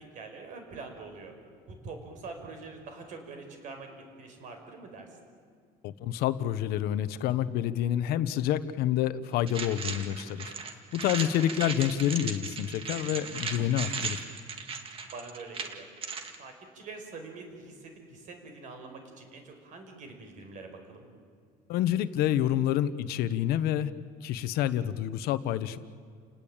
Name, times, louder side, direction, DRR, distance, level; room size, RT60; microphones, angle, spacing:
voice 1, 0.1-1.3 1.7-5.1 11.2-11.7 15.1-15.9 16.4-21.1, right 3 dB, 50° right, 5 dB, 5.2 m, -45 dB
voice 2, 5.8-10.5 10.9-14.2 21.7-23.9 24.2-25.8, left 11 dB, 70° left, 13 dB, 1.1 m, -28 dB
sound 1, 9.5-16.4, right 5 dB, 35° right, 2.1 m, -37 dB
29.5 x 19.0 x 8.8 m, 2.2 s
cardioid pair, 170°, 17 cm